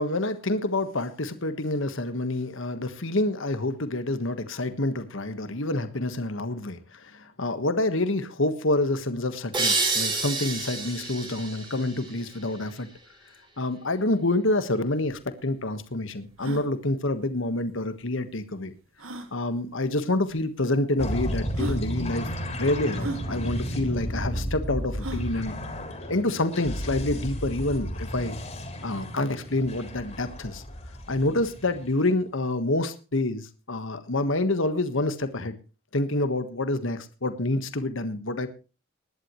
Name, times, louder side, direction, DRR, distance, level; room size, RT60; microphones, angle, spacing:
voice 1, 0.0-12.9 13.6-18.7 19.3-22.3 22.6-25.7 26.1-28.3 28.8-30.6 31.1-35.6 35.9-38.5, left 2 dB, 65° left, 10 dB, 1.5 m, -27 dB
sound 1, 9.5-12.9, right 3 dB, 20° right, 4.4 m, -29 dB
sound 2, 14.8-14.9 15.1-15.2 15.7-15.8 16.3-16.7 18.0-18.1 19.0-19.3 20.3-20.4 21.1-21.2 21.5-21.8 23.0-23.2 25.0-25.3, right 2 dB, 75° right, 2.1 m, -35 dB
sound 3, 21.0-32.1, equal, 30° left, 3.4 m, -33 dB
20.5 x 11.0 x 3.1 m, 0.33 s
head